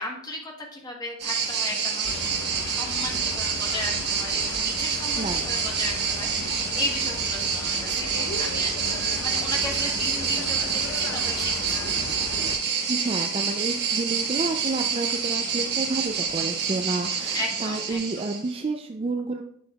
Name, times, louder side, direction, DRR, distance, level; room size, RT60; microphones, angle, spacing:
voice 1, 0.0-8.7 9.2-11.9 17.3-18.0, left 2 dB, 20° left, 0 dB, 1.2 m, -35 dB
sound 1, 1.2-18.6, right 6 dB, 50° right, 1.3 m, -27 dB
sound 2, 2.0-12.6, left 2 dB, 65° left, 0.8 m, -36 dB
voice 2, 5.2-5.6 12.4-12.5 12.9-19.4, right 3 dB, 25° right, 5 dB, 0.3 m, -30 dB
10.0 x 6.1 x 2.3 m, 0.69 s
head